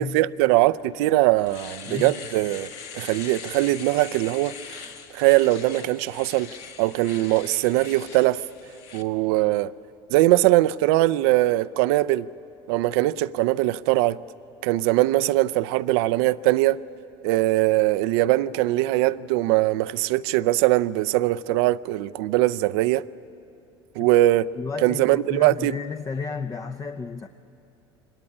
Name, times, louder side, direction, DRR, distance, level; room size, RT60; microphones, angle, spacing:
voice 1, 0.0-2.7 2.9-4.8 5.1-6.5 6.8-8.4 8.9-9.7 10.1-12.3 12.7-14.2 14.6-16.8 17.2-23.0 24.0-24.5 24.8-25.8, right 17 dB, 70° right, 0.5 m, -21 dB
Domestic sounds home sounds, 0.8-0.9 1.3-9.0, left 6 dB, 70° left, 1.6 m, -41 dB
voice 2, 24.5-27.3, left 5 dB, 25° left, 0.9 m, -32 dB
23.5 x 19.0 x 9.8 m
hypercardioid pair, 75°, 14 cm